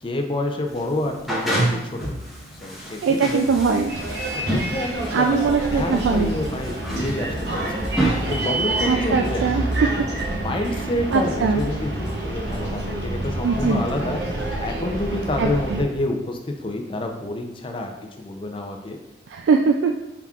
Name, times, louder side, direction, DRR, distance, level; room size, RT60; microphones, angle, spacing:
voice 1, 0.0-2.1 2.6-3.5 4.3-9.8 10.3-19.0, left 1 dB, 30° left, 3 dB, 0.5 m, -28 dB
sound 1, 0.7-8.9, right 1 dB, ahead, 0.8 m, -29 dB
voice 2, 3.0-4.0 5.1-6.3 8.9-9.6 11.1-11.6 13.4-13.8 15.4-15.8 19.3-20.0, right 5 dB, 80° right, 3 dB, 0.3 m, -21 dB
sound 2, 3.4-12.7, equal, 65° left, 1.0 m, -39 dB
Bus, 3.9-15.8, right 1 dB, 60° right, 0.8 m, -28 dB
5.7 x 3.5 x 2.4 m, 0.99 s
head